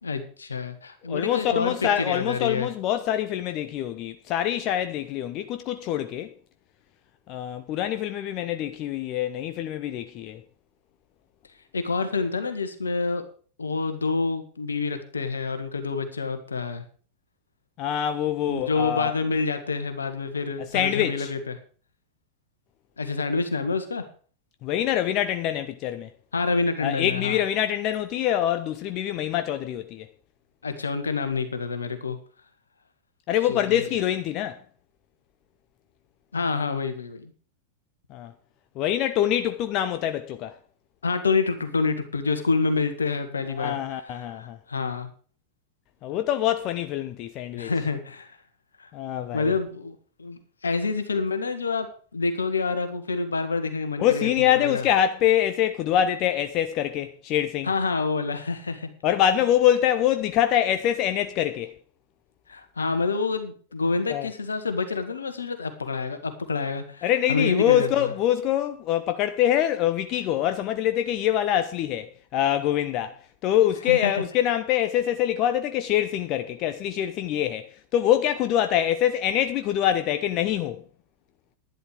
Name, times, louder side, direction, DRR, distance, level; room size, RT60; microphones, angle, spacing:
voice 1, 0.0-2.7 11.7-13.2 13.6-16.8 18.5-21.6 23.0-24.0 26.3-27.4 30.6-32.2 33.5-33.9 36.3-37.3 41.0-45.1 47.5-48.4 48.8-48.9 49.3-51.9 52.1-54.8 57.6-58.9 62.5-68.1 73.9-74.1, left 4 dB, 75° left, 1.8 m, -27 dB
voice 2, 1.1-6.3 7.3-10.4 17.8-19.1 20.6-21.3 24.6-26.1 26.8-30.1 33.3-34.6 38.1-38.3 38.8-40.6 43.5-44.6 46.0-47.7 48.9-49.5 54.0-57.7 59.0-61.7 64.1-64.3 67.0-80.8, left 11 dB, 40° left, 0.8 m, -25 dB
11.5 x 11.0 x 5.0 m
figure-of-eight pair, 90°, 0 cm